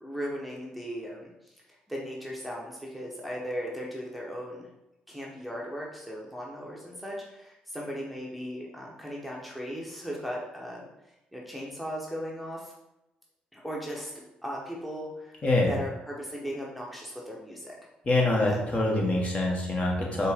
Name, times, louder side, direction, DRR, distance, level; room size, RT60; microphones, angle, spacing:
voice 1, 0.0-4.7 5.1-10.9 11.3-12.7 13.5-17.7 18.5-18.6, equal, ahead, -3 dB, 0.9 m, -37 dB
voice 2, 15.4-15.7 18.0-20.3, left 2 dB, 35° left, -2 dB, 1.3 m, -25 dB
4.3 x 2.6 x 3.5 m, 0.90 s
hypercardioid pair, 50°, 4 cm